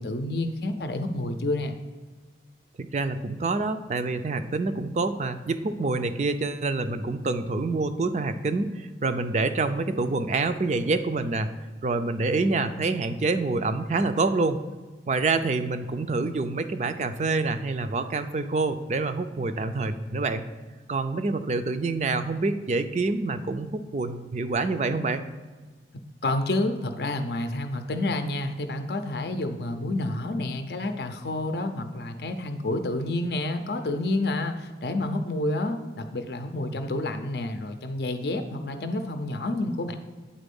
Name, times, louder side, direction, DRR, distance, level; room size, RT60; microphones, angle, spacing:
voice 1, 0.0-1.7 26.2-40.0, left 2 dB, 65° left, 7 dB, 0.5 m, -29 dB
voice 2, 2.8-11.5 11.8-14.6 15.1-20.5 20.9-25.2, right 3 dB, 40° right, 10 dB, 0.4 m, -27 dB
9.0 x 4.2 x 5.3 m, 1.3 s
head